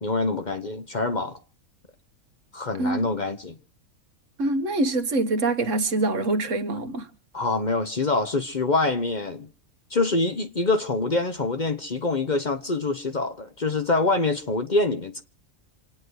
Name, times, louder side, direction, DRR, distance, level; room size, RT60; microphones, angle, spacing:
voice 1, 0.0-1.4 2.5-3.6 7.3-9.5 9.9-15.2, left 3 dB, 40° left, 0.9 m, -25 dB
voice 2, 4.4-7.1, right 2 dB, 65° right, 1.7 m, -24 dB
27.5 x 9.6 x 4.8 m
omnidirectional pair, 1.4 m